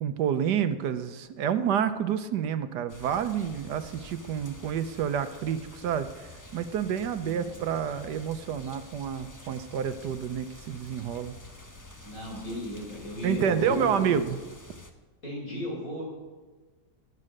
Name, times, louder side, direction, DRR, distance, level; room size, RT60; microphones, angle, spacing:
voice 1, 0.0-11.3 13.2-14.4, right 8 dB, 75° right, 10 dB, 1.3 m, -29 dB
sound 1, 2.9-14.9, left 2 dB, 15° left, 1.0 m, -48 dB
voice 2, 7.1-7.5 12.0-14.1 15.2-16.0, left 1 dB, 50° left, -2 dB, 5.7 m, -35 dB
18.5 x 11.0 x 6.5 m, 1.3 s
omnidirectional pair, 1.8 m